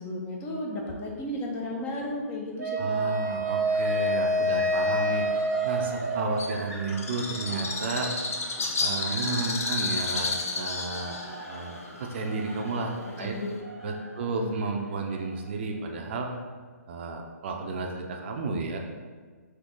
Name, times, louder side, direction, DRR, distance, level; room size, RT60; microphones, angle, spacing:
voice 1, 0.0-3.1 13.2-13.5 14.3-14.5, left 1 dB, 20° left, -1 dB, 0.6 m, -34 dB
Wind instrument woodwind instrument, 2.6-6.7, equal, 85° right, 0.7 m, -27 dB
voice 2, 2.8-5.3 5.6-8.1 8.8-12.9 13.2-13.4 13.8-16.3 16.9-18.8, right 3 dB, 45° right, 2 dB, 0.5 m, -32 dB
sound 1, 3.2-16.4, right 1 dB, 5° right, 1.0 m, -43 dB
Bird, 6.4-13.6, left 3 dB, 60° left, 0.6 m, -32 dB
3.7 x 2.8 x 3.7 m, 1.5 s
figure-of-eight pair, 135°, 9 cm